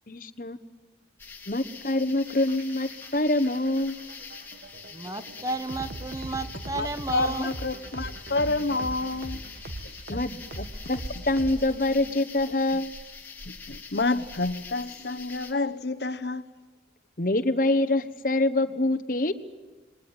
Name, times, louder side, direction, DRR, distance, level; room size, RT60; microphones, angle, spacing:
voice 1, 0.1-0.6 1.5-3.9 10.1-12.9 17.2-19.3, left 2 dB, 50° left, 1.2 m, -25 dB
sound 1, 1.2-15.5, left 4 dB, 10° left, 3.0 m, -44 dB
sound 2, 2.3-12.0, right 1 dB, 60° right, 1.5 m, -40 dB
voice 2, 4.9-7.5, right 2 dB, 20° right, 1.0 m, -32 dB
voice 3, 6.7-9.4 9.8-10.2 13.5-16.4, left 2 dB, 70° left, 1.0 m, -29 dB
27.0 x 22.5 x 8.9 m
head